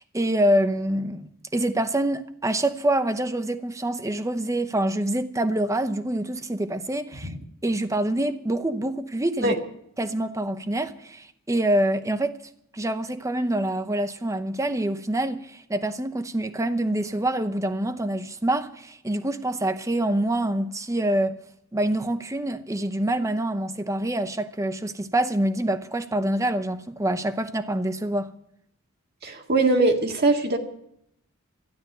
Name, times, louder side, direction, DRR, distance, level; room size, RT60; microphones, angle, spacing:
voice 1, 0.0-7.3 7.6-9.5 10.0-12.4 12.7-21.4 21.7-28.3, right 1 dB, 15° right, 0.8 m, -26 dB
voice 2, 29.2-30.6, right 2 dB, 50° right, 1.9 m, -21 dB
13.0 x 11.5 x 7.9 m
head